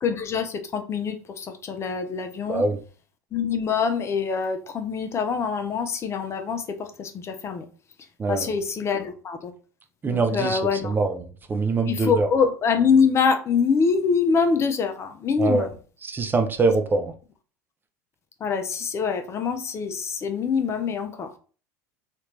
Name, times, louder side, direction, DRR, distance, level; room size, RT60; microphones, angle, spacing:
voice 1, 0.0-2.6 3.3-7.7 8.3-9.5 10.0-10.9 11.9-15.7 18.4-21.3, left 5 dB, 35° left, 0.6 m, -24 dB
voice 2, 8.2-8.5 10.0-11.1 11.5-12.3 15.4-15.7 16.0-17.1, right 3 dB, 25° right, 0.5 m, -23 dB
3.1 x 2.5 x 3.0 m
hypercardioid pair, 85°, 8 cm